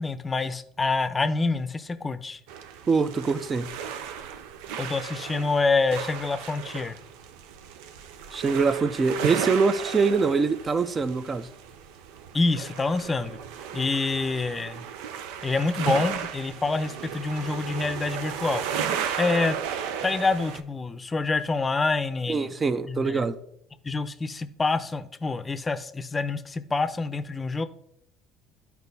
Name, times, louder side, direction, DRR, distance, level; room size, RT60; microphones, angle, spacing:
voice 1, 0.0-2.4 4.8-7.0 12.3-13.4 13.7-14.9 15.4-18.6 19.2-19.6 20.0-22.5 22.9-23.2 23.8-27.6, left 3 dB, 25° left, 12 dB, 0.6 m, -27 dB
sound 1, 2.5-20.6, right 8 dB, 80° right, 0.5 m, -35 dB
voice 2, 2.9-3.7 8.3-11.5 22.3-23.4, right 4 dB, 35° right, 12 dB, 0.6 m, -24 dB
12.0 x 4.5 x 2.7 m, 0.74 s
hypercardioid pair, 75°, 0 cm